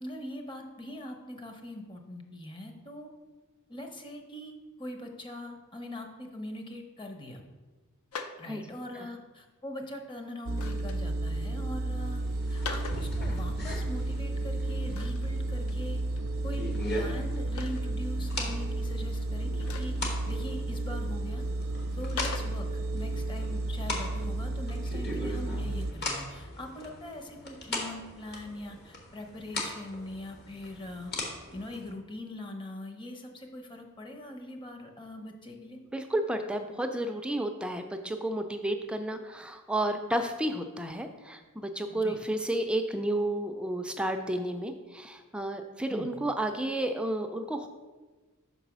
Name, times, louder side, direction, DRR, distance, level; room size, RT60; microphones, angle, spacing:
voice 1, 0.0-3.1 3.7-7.5 8.4-12.2 12.5-16.0 16.4-21.4 22.0-31.1 31.5-35.8 41.9-42.2 45.9-46.1, left 1 dB, 25° left, 3 dB, 0.8 m, -42 dB
sound 1, 8.1-8.4 10.4-11.0 12.5-13.1 14.9-15.3 15.7-15.8 16.2-16.3 17.5-17.8 19.6-20.0 22.2-22.5, left 5 dB, 75° left, 0.5 m, -39 dB
sound 2, 10.5-25.9, right 2 dB, 65° right, 0.5 m, -32 dB
sound 3, 12.0-31.9, left 1 dB, 50° left, 1.2 m, -40 dB
voice 2, 35.9-47.7, right 1 dB, 5° right, 6 dB, 0.3 m, -31 dB
5.3 x 4.0 x 6.0 m, 1.3 s
head